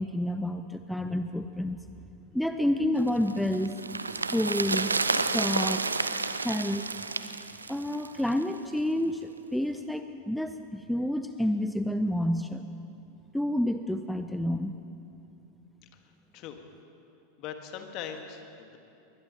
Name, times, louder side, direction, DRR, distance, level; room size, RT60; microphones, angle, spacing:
voice 1, 0.0-1.8 2.3-3.8 4.1-5.8 6.4-6.9 7.7-12.7 13.3-14.8, left 1 dB, ahead, 8 dB, 0.6 m, -29 dB
sound 1, 3.1-8.5 8.8-8.9, right 3 dB, 90° right, 0.5 m, -30 dB
voice 2, 17.4-18.8, left 8 dB, 50° left, 5 dB, 1.6 m, -40 dB
21.5 x 20.5 x 3.0 m, 2.8 s
figure-of-eight pair, 90°, 0 cm